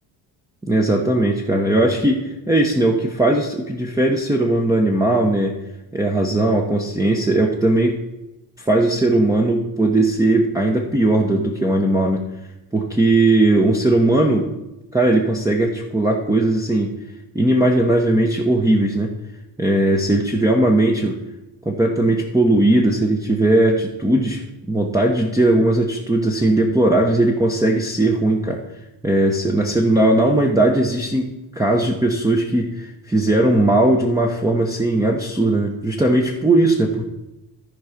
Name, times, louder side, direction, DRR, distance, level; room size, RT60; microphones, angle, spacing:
voice 1, 0.6-5.6 5.9-8.0 8.6-12.2 12.7-14.5 14.9-16.9 17.3-19.1 19.6-21.2 21.7-24.4 24.7-28.6 29.0-37.0, right 1 dB, 10° right, 0 dB, 0.8 m, -18 dB
14.0 x 4.7 x 5.0 m, 0.97 s
cardioid pair, 120°, 41 cm